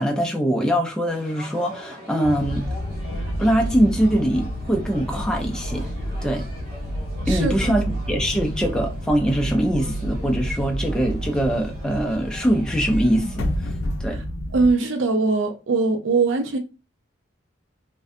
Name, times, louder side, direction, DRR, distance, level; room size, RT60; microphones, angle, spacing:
voice 1, 0.0-2.6 3.4-5.9 6.2-6.5 7.3-13.5 14.0-14.2, equal, 5° left, 0.3 m, -22 dB
sound 1, 1.1-13.6, equal, 50° right, 0.9 m, -43 dB
sound 2, 2.2-14.7, equal, 85° left, 0.4 m, -29 dB
voice 2, 14.5-16.6, right 3 dB, 75° right, 0.5 m, -21 dB
2.5 x 2.2 x 2.5 m
head